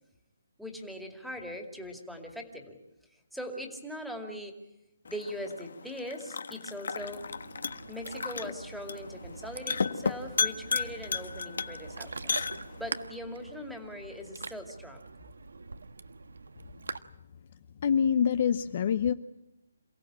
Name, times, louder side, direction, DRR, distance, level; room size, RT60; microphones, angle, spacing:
voice 1, 0.6-2.8 3.3-4.5 5.1-7.2 7.9-12.1 12.7-15.0, equal, ahead, 2 dB, 2.4 m, -41 dB
sound 1, 5.0-13.1, left 5 dB, 65° left, 1.4 m, -35 dB
Ocean, 7.0-17.0, right 3 dB, 85° right, 1.3 m, -44 dB
voice 2, 17.8-19.1, left 7 dB, 35° left, 12 dB, 0.8 m, -25 dB
28.0 x 16.5 x 8.9 m, 0.94 s
hypercardioid pair, 165°, 0 cm